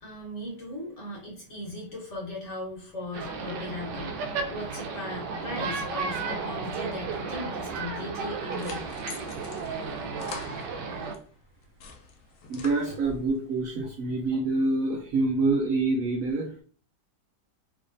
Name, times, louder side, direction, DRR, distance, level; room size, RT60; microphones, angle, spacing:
voice 1, 0.0-9.0, left 2 dB, 45° left, -3 dB, 1.5 m, -38 dB
sound 1, 3.1-11.1, right 4 dB, 85° right, 1.3 m, -34 dB
sound 2, 8.3-11.2 11.6-13.3, left 3 dB, 65° left, 0.7 m, -44 dB
voice 2, 12.5-16.6, right 3 dB, 65° right, 1 dB, 0.9 m, -26 dB
3.5 x 3.2 x 2.5 m, 0.43 s
omnidirectional pair, 1.8 m